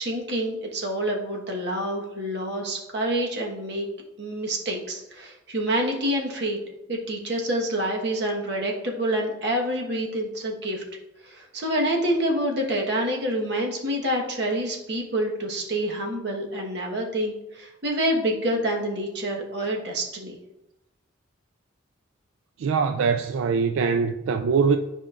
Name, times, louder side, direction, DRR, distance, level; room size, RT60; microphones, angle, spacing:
voice 1, 0.0-3.8 4.2-6.6 6.9-10.8 11.2-20.4, right 1 dB, 55° right, 1.3 m, -27 dB
voice 2, 22.6-24.8, right 5 dB, 85° right, 0.3 m, -22 dB
10.0 x 5.1 x 2.5 m
head